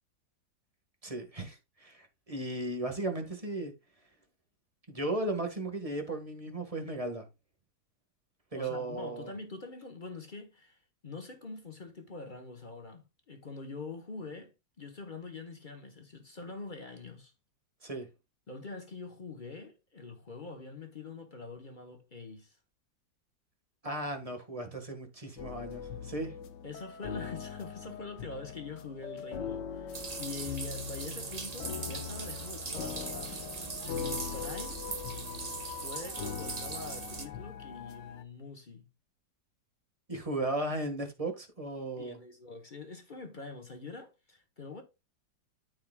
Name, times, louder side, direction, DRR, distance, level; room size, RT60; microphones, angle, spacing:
voice 1, 1.0-3.7 4.9-7.3 8.5-9.3 17.8-18.1 23.8-26.3 40.1-42.2, right 2 dB, 20° right, 1.4 m, -36 dB
voice 2, 8.5-17.3 18.5-22.6 26.6-33.5 33.8-34.8 35.6-38.9 42.0-44.8, left 3 dB, 35° left, 0.8 m, -44 dB
sound 1, 25.4-38.2, left 7 dB, 70° left, 1.4 m, -41 dB
sound 2, 29.9-37.3, right 4 dB, 35° right, 0.6 m, -40 dB
13.5 x 4.9 x 2.3 m
omnidirectional pair, 2.0 m